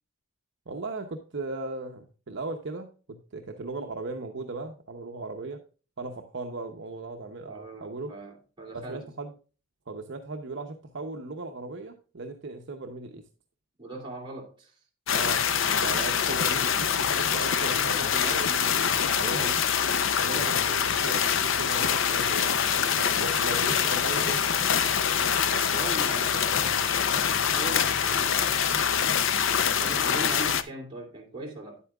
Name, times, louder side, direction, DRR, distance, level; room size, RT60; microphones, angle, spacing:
voice 1, 0.7-5.6 6.0-8.1 8.7-9.3 9.9-13.2 15.1-15.5 15.8-19.6 20.2-22.6 22.9-24.6, right 3 dB, 60° right, 0.8 m, -37 dB
voice 2, 7.4-9.1 13.8-14.8 16.1-16.3 22.7-23.2 24.6-24.7 25.5-28.7 29.6-31.8, right 2 dB, 25° right, 2.6 m, -40 dB
sound 1, 15.1-30.6, left 7 dB, 65° left, 0.6 m, -25 dB
9.9 x 8.3 x 2.3 m
head